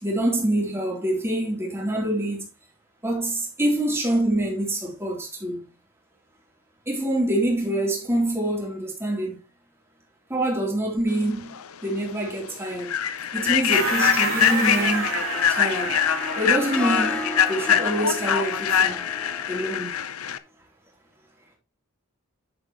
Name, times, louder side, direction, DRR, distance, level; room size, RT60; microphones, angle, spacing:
voice 1, 0.0-2.4 3.0-5.6 6.9-9.4 10.3-11.5 11.8-12.9 13.3-15.2 15.5-16.0 16.4-17.2 17.5-19.0 19.5-19.9, right 1 dB, 10° right, 3.6 m, -25 dB
Human voice / Train, 11.5-11.7 12.1-12.3 12.8-20.4, left 9 dB, 85° left, 0.7 m, -24 dB
sound 1, 13.7-18.1, right 5 dB, 80° right, 2.9 m, -30 dB
Harp, 14.3-19.6, left 1 dB, 5° left, 0.7 m, -37 dB
10.0 x 7.8 x 3.1 m
head